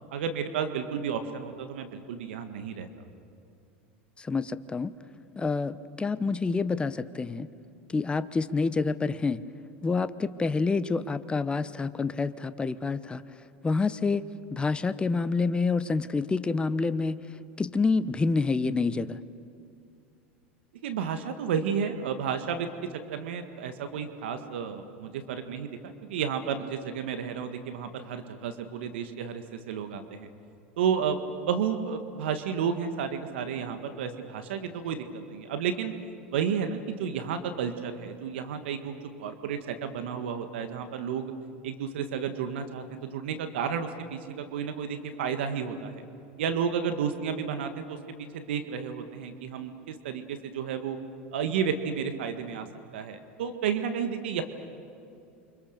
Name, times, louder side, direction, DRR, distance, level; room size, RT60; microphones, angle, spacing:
voice 1, 0.1-2.9 20.8-30.3 30.8-31.2 31.5-35.9 36.3-41.3 41.6-46.0 46.4-51.0 51.3-52.7 52.9-54.4, right 7 dB, 75° right, 8 dB, 1.8 m, -32 dB
voice 2, 4.2-4.9 5.4-7.5 7.9-9.4 9.8-13.2 13.6-17.2 17.6-19.2, left 4 dB, 15° left, 13 dB, 0.9 m, -28 dB
29.0 x 25.5 x 6.7 m, 2.5 s
hypercardioid pair, 95°, 6 cm